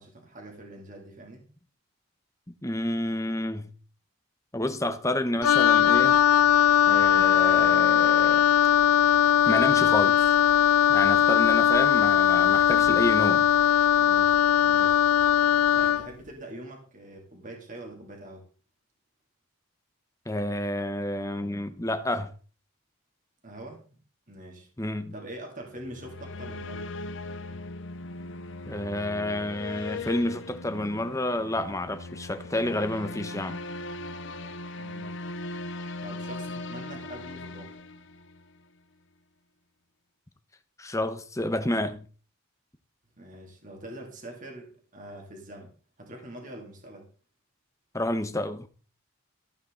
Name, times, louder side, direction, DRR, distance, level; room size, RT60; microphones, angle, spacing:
voice 1, 0.0-1.4 12.5-12.9 14.0-14.3 14.6-15.1 15.7-18.4 23.4-23.8 24.3-24.7 25.1-26.9 34.8-35.1 36.0-37.7 43.2-47.1, right 1 dB, 35° right, 2.9 m, -44 dB
voice 2, 2.5-3.7 4.5-6.2 6.8-8.5 9.5-10.3 10.9-13.5 20.3-22.3 24.8-25.1 28.7-33.6 40.8-42.1 47.9-48.7, left 1 dB, 15° left, 1.0 m, -29 dB
Wind instrument woodwind instrument, 5.4-16.1, left 10 dB, 85° left, 0.6 m, -20 dB
sound 1, 25.8-38.6, left 2 dB, 55° left, 0.8 m, -39 dB
14.5 x 9.2 x 3.9 m
head